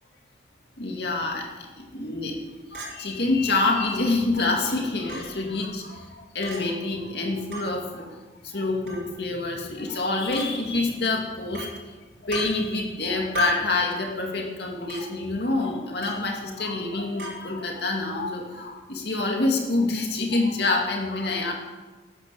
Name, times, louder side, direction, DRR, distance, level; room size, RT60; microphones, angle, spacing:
voice 1, 0.8-2.4 2.7-8.1 8.4-11.7 12.2-21.5, left 2 dB, 55° left, 0 dB, 2.6 m, -27 dB
Chink clink, 2.7-2.9 3.8-3.9 5.1-5.2 6.4-6.6 7.5-7.7 8.9-9.1 10.3-10.5 11.5-11.7 12.3-12.5 13.3-13.7 14.9-15.0 16.0-16.2 17.2-17.4, right 1 dB, 60° right, 5.5 m, -32 dB
12.5 x 10.0 x 7.3 m, 1.2 s
head